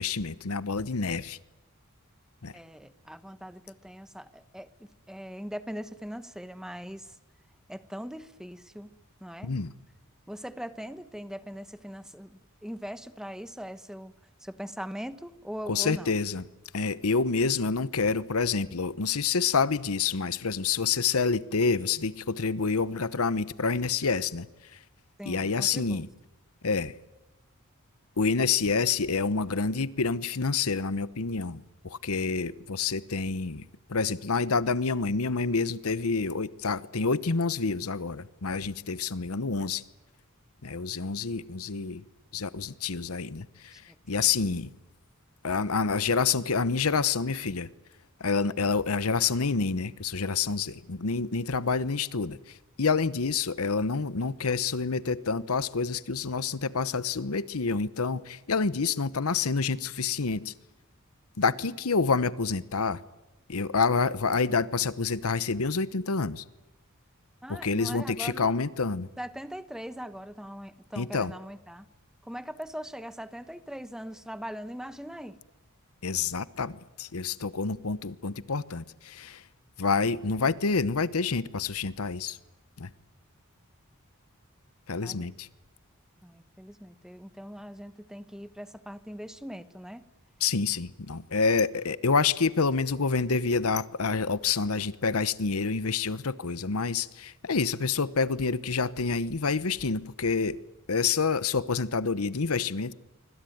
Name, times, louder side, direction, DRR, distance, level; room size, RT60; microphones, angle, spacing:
voice 1, 0.0-1.4 2.4-2.5 9.4-9.7 15.7-16.4 16.7-24.5 24.7-24.8 25.2-26.1 26.6-26.9 28.2-33.6 33.9-39.8 40.6-42.0 42.3-43.8 44.1-44.7 45.4-47.7 48.2-60.5 61.4-63.0 63.5-66.4 67.5-69.1 71.0-71.3 76.0-79.4 79.8-82.4 82.8-82.9 84.9-85.5 90.4-100.6 100.9-102.9, left 4 dB, 80° left, 0.9 m, -28 dB
voice 2, 2.5-7.2 7.7-8.9 9.2-9.5 10.3-14.1 14.4-16.1 25.2-26.0 43.7-44.0 67.4-68.5 69.2-71.9 72.2-75.4 85.0-85.3 86.2-90.0, equal, 5° right, 1.1 m, -41 dB
25.5 x 25.0 x 9.4 m
head